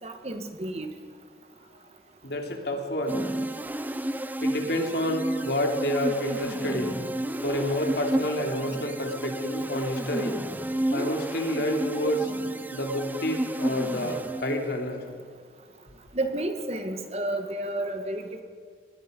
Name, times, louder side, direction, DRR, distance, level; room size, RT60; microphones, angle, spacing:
voice 1, 0.0-0.9 16.1-18.4, right 1 dB, 35° right, 6 dB, 1.6 m, -31 dB
voice 2, 2.2-3.3 4.4-7.0 7.4-10.4 10.9-12.3 12.7-15.0, equal, 65° left, 2 dB, 3.3 m, -29 dB
sound 1, 3.1-14.9, right 1 dB, 10° right, 0.6 m, -31 dB
24.5 x 20.5 x 5.4 m, 2.1 s
head